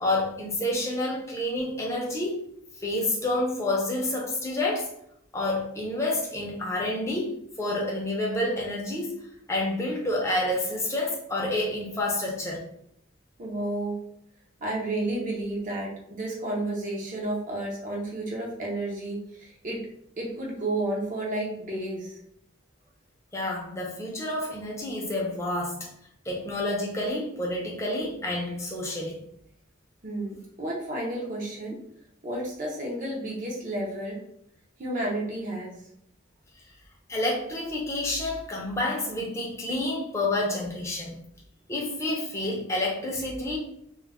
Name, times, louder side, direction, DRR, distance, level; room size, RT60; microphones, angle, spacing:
voice 1, 0.0-2.5 2.8-4.9 5.3-12.6 23.3-25.9 26.2-29.2 37.1-41.1 41.7-43.6, left 1 dB, 15° left, -2 dB, 0.5 m, -29 dB
voice 2, 13.4-14.0 14.6-19.9 20.2-22.2 30.0-31.8 32.2-34.2 34.8-35.8, right 1 dB, 40° right, -2 dB, 0.5 m, -31 dB
2.2 x 2.1 x 3.3 m, 0.72 s
head